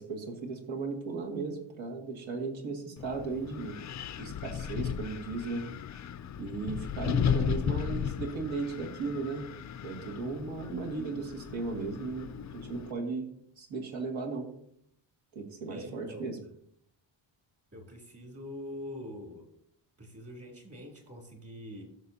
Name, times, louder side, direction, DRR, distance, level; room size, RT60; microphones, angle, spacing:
voice 1, 0.0-3.8 4.2-5.7 6.4-9.5 9.8-13.3 13.6-14.5 15.3-16.4, right 4 dB, 75° right, 0 dB, 2.2 m, -36 dB
Wind, 3.0-12.9, left 8 dB, 40° left, 0.4 m, -35 dB
voice 2, 15.7-16.2 17.7-19.5 20.0-21.8, left 1 dB, 30° right, 0 dB, 3.0 m, -44 dB
16.5 x 6.5 x 2.8 m, 0.71 s
wide cardioid pair, 145°, 47 cm